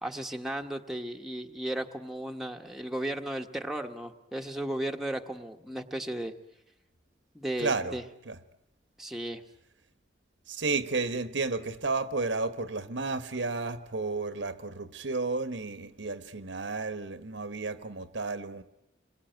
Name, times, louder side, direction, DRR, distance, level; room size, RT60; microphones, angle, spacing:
voice 1, 0.0-6.3 7.3-8.0 9.0-9.4, right 1 dB, ahead, 1.2 m, -35 dB
voice 2, 7.6-8.0 8.3-8.4 10.5-18.6, right 3 dB, 85° right, 1.4 m, -32 dB
27.5 x 22.0 x 9.2 m
head